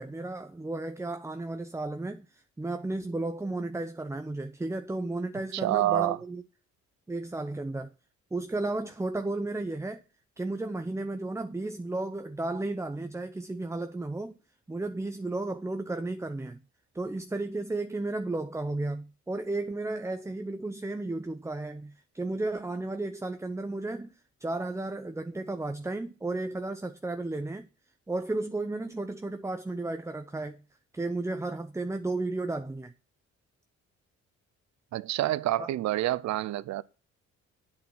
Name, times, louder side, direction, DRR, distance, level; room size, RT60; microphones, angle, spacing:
voice 1, 0.0-6.4 7.1-7.9 8.3-10.0 10.4-14.3 14.7-16.6 16.9-24.1 24.4-27.7 28.1-30.6 30.9-32.9 35.6-35.7, right 2 dB, 10° right, 0.7 m, -33 dB
voice 2, 5.5-6.2 34.9-36.8, right 15 dB, 65° right, 0.6 m, -27 dB
8.8 x 7.3 x 6.1 m
cardioid pair, 90°, 30 cm